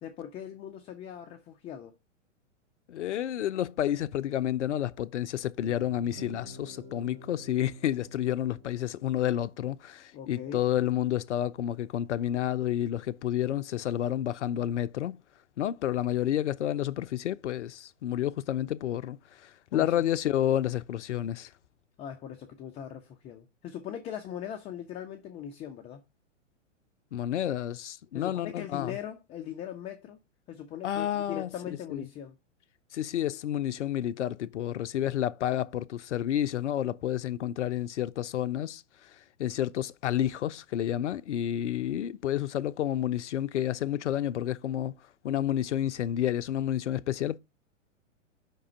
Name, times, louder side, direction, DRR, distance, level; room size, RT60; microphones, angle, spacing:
voice 1, 0.0-2.0 10.1-10.6 19.7-20.0 22.0-26.0 28.1-30.2 30.5-32.4, left 9 dB, 15° left, 0.5 m, -40 dB
voice 2, 2.9-15.2 15.6-21.5 27.1-29.0 30.8-31.5 31.9-32.0 32.9-39.1 39.4-44.9 45.2-47.4, left 11 dB, 70° left, 0.5 m, -30 dB
sound 1, 5.6-9.8, right 1 dB, 25° right, 1.5 m, -49 dB
5.4 x 3.7 x 5.3 m
figure-of-eight pair, 105°, 38 cm